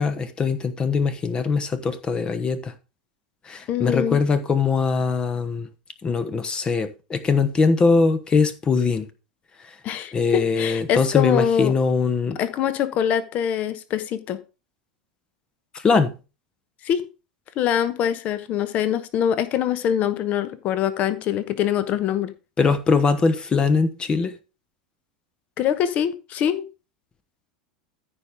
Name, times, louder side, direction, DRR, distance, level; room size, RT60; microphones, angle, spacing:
voice 1, 0.0-2.7 3.4-5.7 6.0-9.1 9.6-9.8 10.1-12.4 15.7-16.2 22.6-24.4, left 4 dB, 20° left, 1.0 m, -21 dB
voice 2, 3.7-4.2 9.8-11.7 12.4-14.4 16.8-17.1 17.6-22.3 25.6-26.7, left 9 dB, 40° left, 1.1 m, -24 dB
14.0 x 5.3 x 3.6 m
figure-of-eight pair, 80°, 4 cm